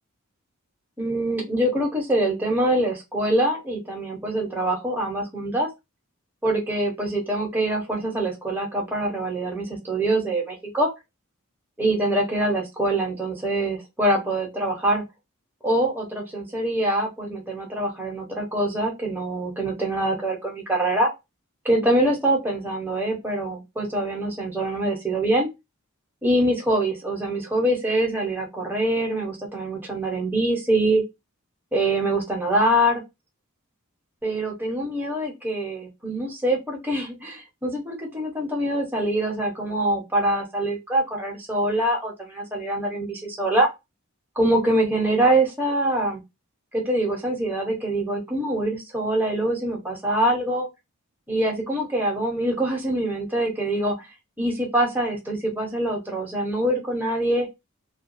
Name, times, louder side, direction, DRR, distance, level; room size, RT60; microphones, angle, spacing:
voice 1, 1.0-5.7 6.4-10.9 11.8-15.0 15.6-21.1 21.6-25.5 26.2-31.0 31.7-33.0 34.2-43.7 44.4-46.2 46.7-50.7 51.3-54.1 54.4-57.5, right 1 dB, 10° right, -1 dB, 0.8 m, -24 dB
2.3 x 2.3 x 2.5 m, 0.22 s
head